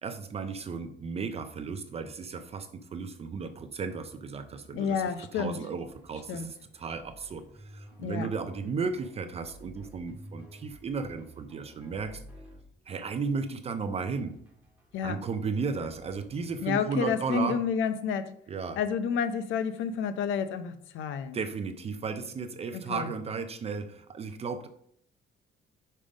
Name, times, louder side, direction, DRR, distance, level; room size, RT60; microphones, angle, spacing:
voice 1, 0.0-5.0 5.3-12.2 12.9-14.3 15.0-17.6 18.5-18.8 21.3-24.7, right 5 dB, 30° right, 0.5 m, -34 dB
voice 2, 4.7-5.6 6.3-6.5 8.0-8.3 14.9-15.2 16.6-18.4 18.8-21.4 22.7-23.1, left 6 dB, 80° left, 0.6 m, -30 dB
sound 1, 5.9-16.7, equal, 10° right, 2.0 m, -53 dB
5.4 x 5.1 x 5.1 m
cardioid pair, 155°, 20 cm